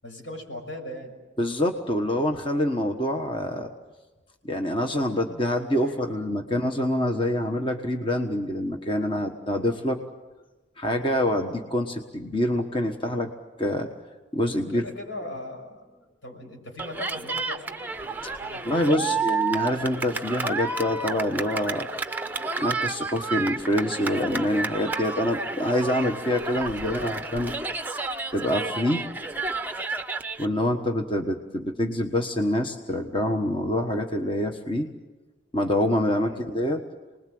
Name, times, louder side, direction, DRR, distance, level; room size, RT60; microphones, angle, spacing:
voice 1, 0.0-1.2 5.8-6.0 14.7-17.8 18.4-19.2 26.8-27.1 36.2-36.4, left 1 dB, 80° left, 2 dB, 6.2 m, -39 dB
voice 2, 1.4-3.7 4.4-10.0 10.8-13.3 13.6-13.9 14.3-14.8 18.6-21.9 22.6-27.5 28.3-29.0 30.4-34.9 35.5-36.8, left 1 dB, 25° left, 3 dB, 1.3 m, -26 dB
Cheering, 16.8-30.4, right 4 dB, 10° right, 0.7 m, -31 dB
29.5 x 20.5 x 7.8 m, 1.2 s
head